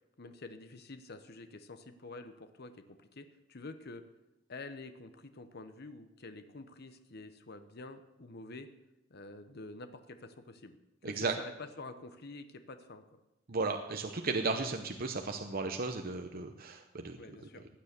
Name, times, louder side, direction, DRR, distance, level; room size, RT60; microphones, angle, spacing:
voice 1, 0.2-4.0 4.5-8.7 9.1-13.0 17.2-17.6, left 3 dB, 55° left, 9 dB, 1.0 m, -48 dB
voice 2, 11.0-11.3 13.5-17.2, right 3 dB, 50° right, 5 dB, 0.9 m, -35 dB
16.0 x 9.8 x 6.8 m, 0.96 s
head